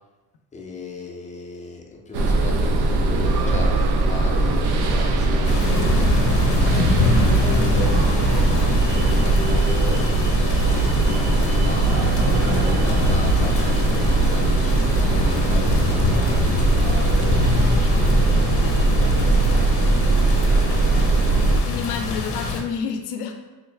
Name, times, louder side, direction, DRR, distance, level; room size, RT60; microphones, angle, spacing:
voice 1, 0.5-6.1 6.6-12.1 12.4-19.5, left 3 dB, 20° left, 0 dB, 0.4 m, -36 dB
sound 1, 2.1-21.6, right 3 dB, 85° right, 0.5 m, -20 dB
sound 2, 5.4-22.6, left 3 dB, 50° left, 0.8 m, -24 dB
voice 2, 21.7-23.3, left 6 dB, 85° left, 4 dB, 0.5 m, -29 dB
3.7 x 2.2 x 3.2 m, 1.2 s
cardioid pair, 120°, 39 cm